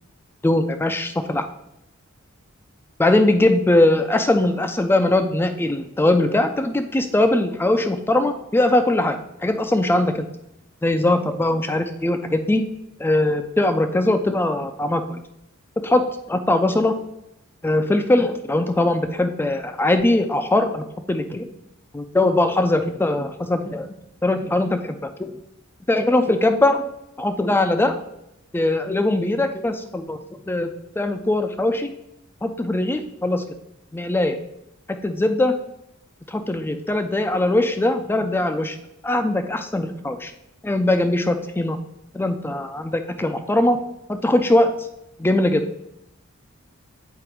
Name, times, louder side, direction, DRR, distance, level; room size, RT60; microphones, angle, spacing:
voice 1, 0.4-1.5 3.0-9.2 9.4-10.3 10.8-12.6 13.0-15.2 15.8-16.0 16.3-16.9 17.6-21.5 21.9-23.9 24.2-25.3 25.9-26.8 27.2-27.9 28.5-30.2 30.5-30.7 31.0-31.9 32.4-33.4 33.9-34.4 35.0-35.5 36.3-38.8 39.0-40.3 40.6-41.8 42.1-43.8 44.1-44.7 45.2-45.7, left 1 dB, 10° left, 7 dB, 0.3 m, -20 dB
7.6 x 3.9 x 4.5 m, 0.83 s
head